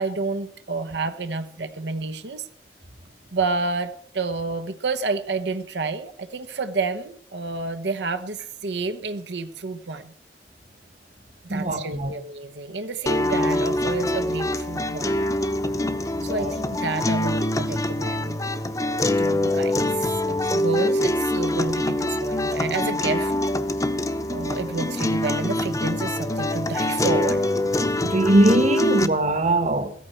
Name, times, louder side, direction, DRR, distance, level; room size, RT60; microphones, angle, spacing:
voice 1, 0.0-2.5 3.3-10.1 11.4-15.3 16.2-18.4 19.2-23.3 24.3-27.4, right 3 dB, 80° right, 1.0 m, -29 dB
voice 2, 11.5-12.1 16.2-16.6 28.0-29.9, right 1 dB, 40° right, 1.3 m, -21 dB
sound 1, 13.1-29.1, left 1 dB, 20° left, 0.8 m, -24 dB
16.5 x 14.0 x 4.4 m
head